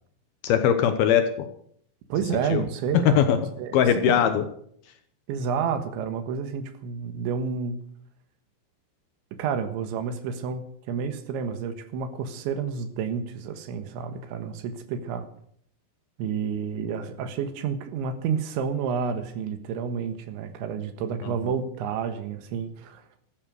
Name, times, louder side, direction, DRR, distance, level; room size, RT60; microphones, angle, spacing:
voice 1, 0.4-1.5 2.5-2.6 3.1-3.4 3.7-4.4 21.2-21.3, left 9 dB, 70° left, 9 dB, 2.6 m, -21 dB
voice 2, 2.1-4.3 5.3-7.8 9.4-15.3 16.2-23.1, right 6 dB, 85° right, 9 dB, 3.9 m, -30 dB
14.0 x 13.0 x 6.6 m, 0.65 s
omnidirectional pair, 5.2 m